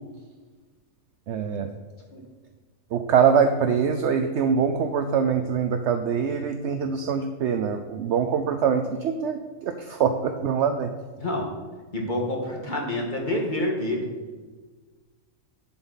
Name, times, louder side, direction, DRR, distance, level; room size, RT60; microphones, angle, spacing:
voice 1, 1.3-1.7 2.9-10.9, right 7 dB, 65° right, 7 dB, 0.8 m, -24 dB
voice 2, 11.9-14.1, left 1 dB, 35° left, 0 dB, 1.8 m, -27 dB
10.5 x 7.8 x 4.1 m, 1.4 s
omnidirectional pair, 1.5 m